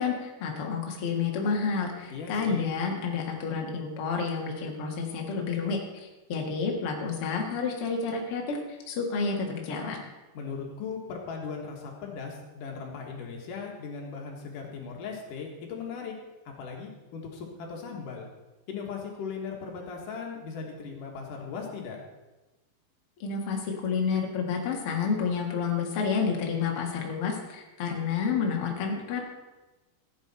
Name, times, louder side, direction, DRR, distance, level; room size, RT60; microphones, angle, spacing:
voice 1, 0.0-5.8 6.3-10.0 23.2-29.2, left 5 dB, 85° left, 0 dB, 1.2 m, -29 dB
voice 2, 2.1-2.7 10.3-16.1 16.6-18.3 18.7-22.0, left 5 dB, 60° left, 0 dB, 2.6 m, -38 dB
15.0 x 9.5 x 4.3 m, 1.1 s
omnidirectional pair, 5.3 m